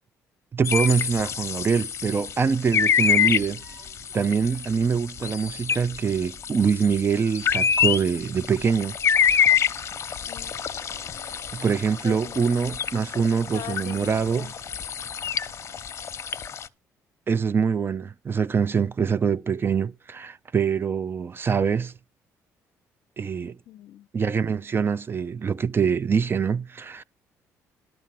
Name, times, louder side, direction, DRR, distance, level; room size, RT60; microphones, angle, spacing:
voice 1, 0.5-3.6 4.1-9.0 11.5-14.5 17.3-21.9 23.2-23.6 24.1-27.0, right 6 dB, 35° right, 0.5 m, -24 dB
sound 1, 0.6-16.7, left 7 dB, 45° left, 0.9 m, -27 dB
sound 2, 2.5-15.9, right 2 dB, 75° right, 2.4 m, -53 dB
voice 2, 10.9-11.3 12.0-12.7 13.1-14.5 23.7-24.1, left 12 dB, 70° left, 0.6 m, -42 dB
12.0 x 5.5 x 7.6 m
supercardioid pair, 75°, 7 cm